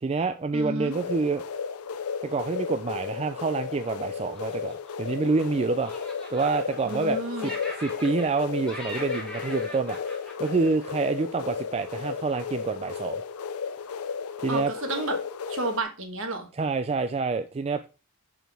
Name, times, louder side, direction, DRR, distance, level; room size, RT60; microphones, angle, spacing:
voice 1, 0.0-1.4 2.2-5.9 6.3-7.5 7.8-13.2 14.4-14.7 16.5-17.9, right 4 dB, 30° right, 8 dB, 0.3 m, -27 dB
voice 2, 0.5-1.0 6.8-7.5 14.5-15.2 15.5-16.5, right 2 dB, 60° right, 6 dB, 1.4 m, -31 dB
sound 1, 0.9-15.8, left 6 dB, 75° left, 0.5 m, -34 dB
Laughter, 4.2-5.5 5.8-7.1 7.4-8.4 8.7-11.2, left 1 dB, 5° left, 1.7 m, -41 dB
6.7 x 6.1 x 3.4 m, 0.31 s
head